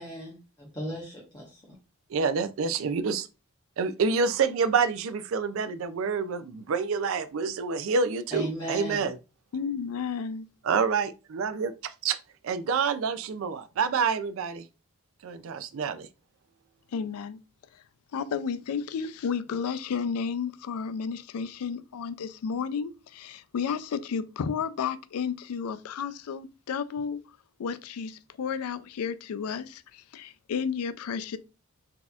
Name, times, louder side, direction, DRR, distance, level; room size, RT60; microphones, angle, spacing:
voice 1, 0.0-1.8 8.3-9.0, right 1 dB, 20° left, 0.8 m, -36 dB
voice 2, 2.1-3.3 3.8-9.2 10.7-12.2 12.4-14.7 15.2-16.1, right 5 dB, 70° right, 0.3 m, -27 dB
voice 3, 9.5-10.4 16.9-17.4 18.1-27.2 27.6-31.4, left 6 dB, 90° left, 0.4 m, -32 dB
4.0 x 2.8 x 2.3 m
head